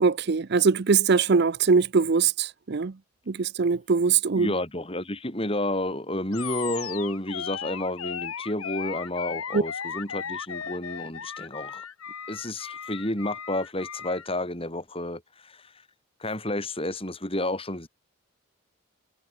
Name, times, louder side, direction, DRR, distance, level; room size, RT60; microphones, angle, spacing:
voice 1, 0.0-2.9 3.3-4.5 9.5-9.6, right 5 dB, 50° right, 0.5 m, -22 dB
voice 2, 4.3-11.9 12.3-15.7 16.2-17.9, left 1 dB, 25° left, 6.0 m, -31 dB
Animal, 6.3-14.3, left 7 dB, 85° left, 1.5 m, -36 dB
head